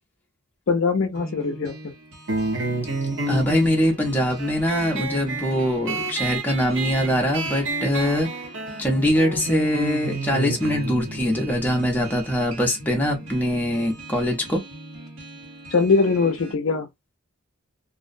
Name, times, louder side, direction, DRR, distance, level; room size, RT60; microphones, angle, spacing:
voice 1, 0.7-1.8 15.7-16.9, left 4 dB, 60° left, 0.4 m, -21 dB
sound 1, 1.2-16.5, right 1 dB, 80° right, 1.2 m, -41 dB
sound 2, 2.3-13.4, right 2 dB, 55° right, 0.6 m, -31 dB
voice 2, 3.3-8.3 8.8-14.6, equal, 10° left, 0.6 m, -23 dB
2.5 x 2.1 x 2.5 m
head